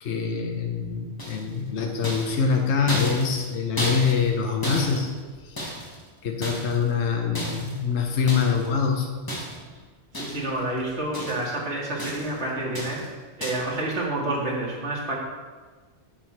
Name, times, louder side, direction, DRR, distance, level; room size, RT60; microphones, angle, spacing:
voice 1, 0.0-5.1 5.4-5.6 6.2-9.1, left 6 dB, 70° left, 2 dB, 1.2 m, -24 dB
sound 1, 1.2-1.6 2.0-4.4 4.6-6.0 6.4-6.9 7.3-7.8 8.3-8.7 9.3-9.8 10.1-10.6 10.9-11.6 12.0-12.4 12.7-13.1 13.4-13.8, equal, 20° left, 1.2 m, -33 dB
voice 2, 10.1-15.2, right 2 dB, 65° right, -3 dB, 2.2 m, -29 dB
8.3 x 7.3 x 4.5 m, 1.4 s
omnidirectional pair, 1.3 m